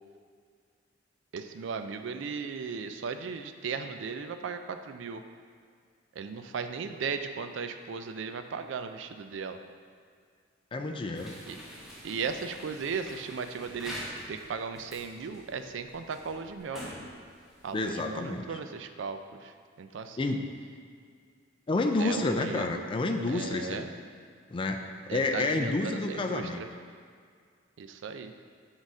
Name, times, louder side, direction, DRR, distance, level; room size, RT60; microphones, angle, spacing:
voice 1, 1.3-5.2 6.2-9.6 11.5-11.6 12.0-16.9 17.6-19.5 19.8-20.4 22.0-22.9 23.3-23.9 25.1-26.7 27.8-28.3, right 5 dB, 70° right, 8 dB, 0.4 m, -36 dB
voice 2, 10.7-11.3 17.7-18.6 20.2-20.5 21.7-23.9 24.5-26.6, left 2 dB, 25° left, 4 dB, 0.4 m, -29 dB
sound 1, 11.1-18.4, equal, ahead, 1.1 m, -46 dB
6.2 x 4.0 x 4.8 m, 2.1 s
head